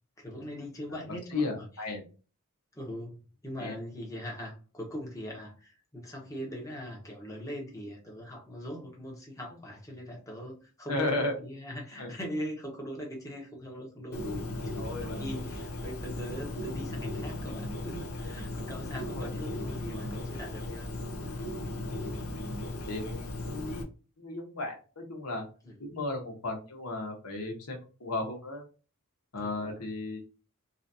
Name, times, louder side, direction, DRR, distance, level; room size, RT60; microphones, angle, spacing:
voice 1, 0.2-1.7 2.7-3.2 3.4-14.2 14.6-14.7 15.0-20.9 25.6-25.7 29.4-29.8, equal, 15° left, -1 dB, 1.0 m, -41 dB
voice 2, 1.3-2.0 3.6-3.7 10.9-11.3 12.0-12.1 14.2-14.4 14.8-15.2 19.1-19.6 22.9-23.8 24.2-25.4 25.8-28.6 29.3-30.2, left 2 dB, 90° left, 1 dB, 1.2 m, -35 dB
Bird, 14.1-23.8, left 1 dB, 70° left, 0.6 m, -37 dB
3.9 x 2.5 x 2.7 m, 0.35 s
head